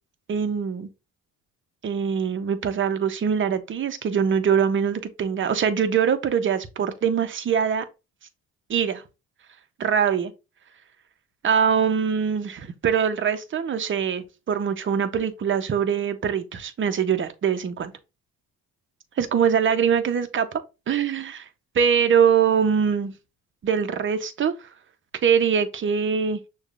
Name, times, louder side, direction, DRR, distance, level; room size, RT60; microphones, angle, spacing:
voice 1, 0.3-0.9 1.8-7.8 8.7-9.0 9.8-10.3 11.4-17.9 19.2-20.6 20.9-21.4 21.7-23.1 23.6-24.5 25.2-26.4, right 7 dB, 40° right, 0.7 m, -23 dB
6.4 x 2.4 x 2.4 m
cardioid pair, 90°, 32 cm